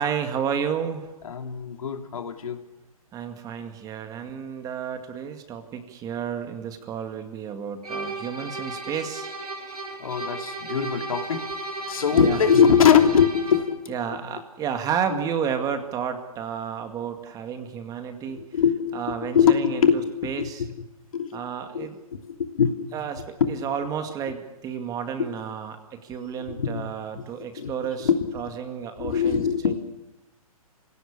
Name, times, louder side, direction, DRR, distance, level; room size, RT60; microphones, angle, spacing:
voice 1, 0.0-1.1 3.1-9.3 11.9-12.4 13.9-18.4 18.9-19.8 20.2-20.6 21.3-21.9 22.9-25.8 26.0-28.1 28.3-29.8, right 7 dB, 20° right, 7 dB, 2.1 m, -31 dB
voice 2, 1.2-2.6 10.0-11.5 11.9-14.4 15.1-15.3 18.3-20.8 21.1-21.4 21.7-21.9 22.2-23.6 25.2-25.3 26.5-26.8 27.2-27.3 27.6-27.7 28.0-28.4 29.0-29.8, left 7 dB, 65° left, 5 dB, 2.9 m, -23 dB
sound 1, 7.8-13.8, right 2 dB, 85° right, 6.3 m, -35 dB
26.0 x 17.0 x 8.6 m, 1.0 s
hypercardioid pair, 130°, 19 cm